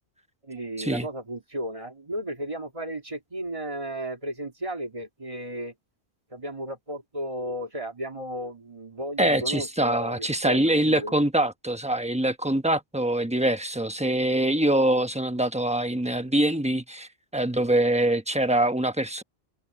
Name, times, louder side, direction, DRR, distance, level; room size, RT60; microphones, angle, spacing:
voice 1, 0.4-5.7 6.3-11.1, right 1 dB, 30° right, 2.0 m, -34 dB
voice 2, 9.2-19.2, right 1 dB, 5° right, 0.9 m, -24 dB
omnidirectional pair, 1.1 m